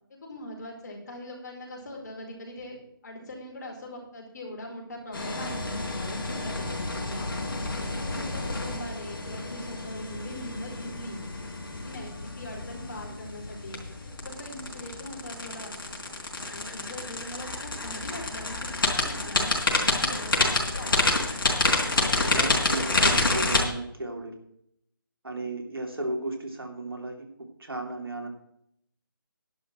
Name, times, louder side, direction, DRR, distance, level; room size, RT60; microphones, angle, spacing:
voice 1, 0.1-2.8 3.0-7.4 7.9-11.2 11.7-13.8 14.2-16.0 16.5-21.1, left 1 dB, 50° left, 0 dB, 4.7 m, -41 dB
sound 1, 5.1-23.6, left 2 dB, 70° left, 4.0 m, -29 dB
voice 2, 7.8-8.2 13.1-13.2 22.2-24.3 25.2-27.3 27.6-28.3, right 2 dB, 85° right, 4 dB, 2.9 m, -35 dB
11.0 x 6.2 x 7.4 m, 0.73 s
figure-of-eight pair, 160°, 12 cm